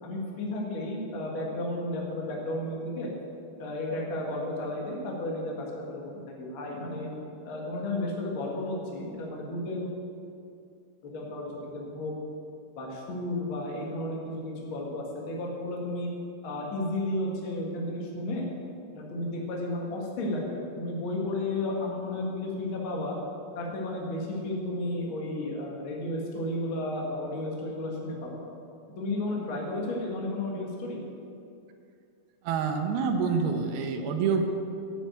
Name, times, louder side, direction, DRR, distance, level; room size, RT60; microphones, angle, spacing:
voice 1, 0.0-3.1 3.6-6.0 6.3-7.1 7.4-9.9 11.0-12.2 12.8-16.1 16.4-18.4 18.9-20.4 20.8-23.2 23.5-28.5 29.0-31.0, left 1 dB, 45° left, -2 dB, 1.9 m, -33 dB
voice 2, 32.4-34.4, right 5 dB, 80° right, 4 dB, 2.8 m, -27 dB
8.4 x 7.4 x 8.8 m, 2.6 s
omnidirectional pair, 4.4 m